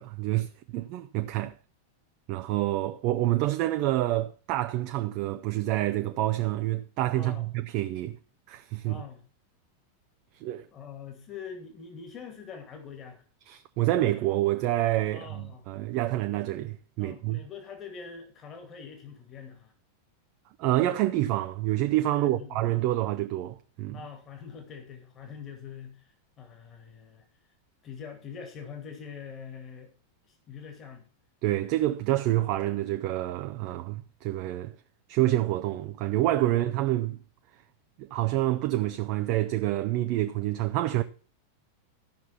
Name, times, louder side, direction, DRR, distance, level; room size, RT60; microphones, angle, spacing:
voice 1, 0.0-1.5 2.3-8.2 8.5-9.0 10.4-10.7 13.5-17.4 20.6-24.0 31.4-34.7 35.1-37.2 38.0-41.0, right 15 dB, 45° right, 0.6 m, -27 dB
voice 2, 7.1-7.5 8.8-9.2 10.7-13.2 15.1-15.7 17.0-19.7 22.1-22.6 23.9-26.1 26.4-27.2 27.8-29.9 30.3-31.1, left 6 dB, 30° left, 2.5 m, -44 dB
13.5 x 6.0 x 5.8 m
figure-of-eight pair, 90°, 0 cm